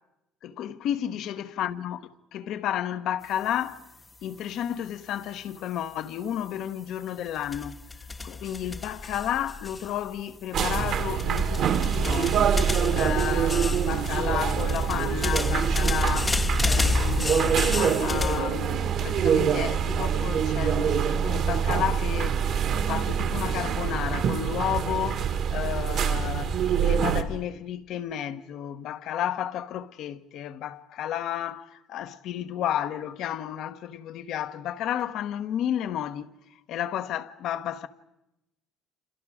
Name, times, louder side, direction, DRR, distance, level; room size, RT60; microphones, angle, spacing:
voice 1, 0.4-3.8 4.2-7.8 8.2-12.5 12.9-36.3 36.7-37.9, left 10 dB, 65° left, 1.1 m, -32 dB
sound 1, 7.4-10.2 10.7-18.4, left 3 dB, 20° left, 0.8 m, -30 dB
sound 2, 10.5-27.2, right 7 dB, 60° right, 2.1 m, -25 dB
29.0 x 27.5 x 5.0 m
supercardioid pair, 90°, 0 cm